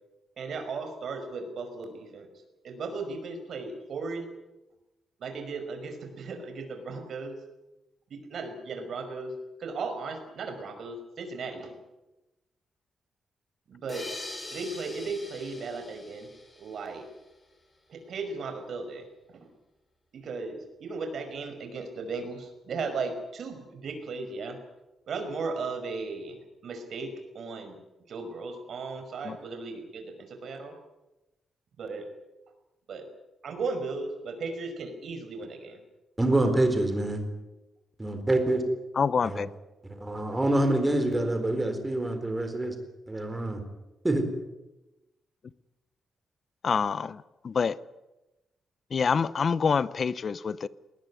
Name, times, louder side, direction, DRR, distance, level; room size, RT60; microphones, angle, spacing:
voice 1, 0.4-2.3 2.6-4.3 5.2-7.4 8.1-9.3 9.6-11.8 13.7-14.1 14.5-16.3 16.6-17.0 17.9-19.5 20.1-24.6 25.1-26.4 26.6-27.8 28.1-30.8 31.8-32.1 32.9-33.1 33.4-35.8, right 4 dB, 60° right, 6 dB, 5.4 m, -36 dB
sound 1, 13.9-17.2, left 2 dB, 20° left, 7.0 m, -43 dB
voice 2, 36.2-37.2 38.0-38.6 39.2-39.4 39.8-42.8 43.1-43.6 44.0-44.3, right 1 dB, 10° right, 7 dB, 4.1 m, -26 dB
voice 3, 39.0-39.5 46.6-47.8 48.9-50.7, left 5 dB, 40° left, 17 dB, 0.8 m, -26 dB
20.5 x 19.5 x 9.7 m, 1.0 s
wide cardioid pair, 150°, 0 cm